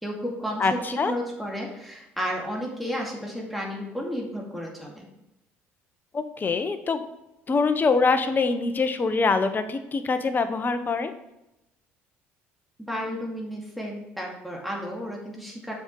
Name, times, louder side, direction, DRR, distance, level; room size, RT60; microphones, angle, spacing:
voice 1, 0.0-0.8 1.0-5.1 12.9-15.7, equal, ahead, -2 dB, 2.2 m, -32 dB
voice 2, 0.6-1.1 6.1-7.0 7.5-11.1, left 4 dB, 35° left, 9 dB, 0.9 m, -24 dB
7.1 x 5.2 x 4.7 m, 0.90 s
hypercardioid pair, 65°, 6 cm